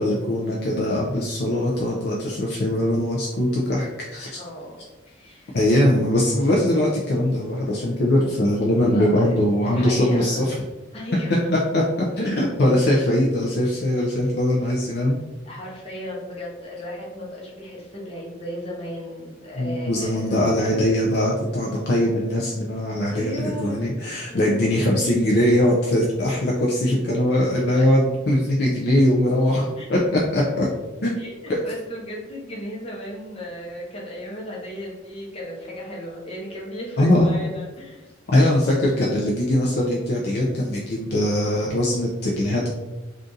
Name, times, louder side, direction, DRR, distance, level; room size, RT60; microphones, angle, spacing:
voice 1, 0.0-4.4 5.5-10.5 11.7-15.2 19.6-30.7 31.0-31.2 31.5-31.6 37.0-37.3 38.3-42.7, left 1 dB, 50° left, -3 dB, 0.4 m, -21 dB
voice 2, 4.4-4.8 5.1-5.6 8.8-10.5 10.9-11.5 15.5-20.4 23.1-23.9 24.3-25.2 27.7-27.8 29.8-30.0 31.1-38.1, equal, 30° left, -4 dB, 0.8 m, -35 dB
2.6 x 2.5 x 3.7 m, 1.1 s
head